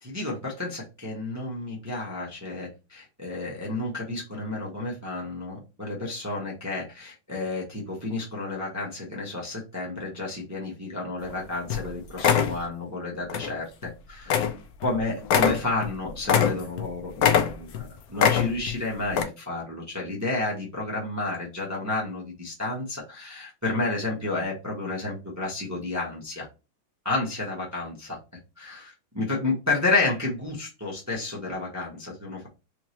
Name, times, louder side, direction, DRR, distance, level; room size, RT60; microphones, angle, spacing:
voice 1, 0.0-14.3 14.8-26.5 27.0-28.2 28.6-32.5, left 2 dB, 25° right, -3 dB, 0.3 m, -31 dB
sound 1, 11.3-11.4 11.7-11.9 12.2-12.6 13.3-13.5 13.8-13.9 14.3-14.6 14.8-14.9 15.2-16.9 17.2-17.8 18.2-18.7 19.1-19.2, left 8 dB, 80° left, 0.8 m, -22 dB
3.5 x 3.2 x 2.8 m, 0.28 s
omnidirectional pair, 2.3 m